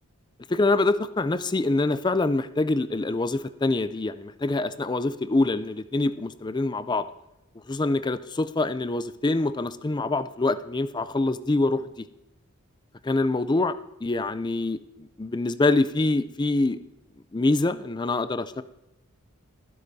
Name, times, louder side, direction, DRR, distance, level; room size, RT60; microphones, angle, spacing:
voice 1, 0.5-7.1 7.7-12.1 13.0-13.7 14.0-16.8 17.3-18.6, left 2 dB, 20° left, 13 dB, 0.4 m, -25 dB
23.0 x 7.8 x 2.7 m, 0.91 s
head